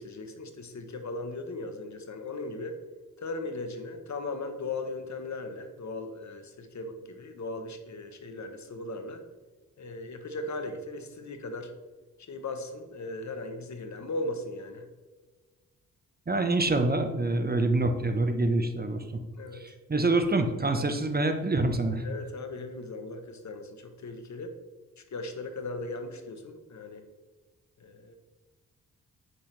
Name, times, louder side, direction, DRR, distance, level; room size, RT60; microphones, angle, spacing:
voice 1, 0.0-2.8 3.2-9.2 9.8-11.7 12.3-14.9 19.3-19.6 22.0-24.5 25.1-27.0 27.8-28.1, left 2 dB, 50° left, 7 dB, 1.2 m, -38 dB
voice 2, 16.3-19.2 19.5-22.0, right 2 dB, 25° right, 6 dB, 1.2 m, -26 dB
8.6 x 6.2 x 3.4 m, 1.3 s
supercardioid pair, 45°, 37 cm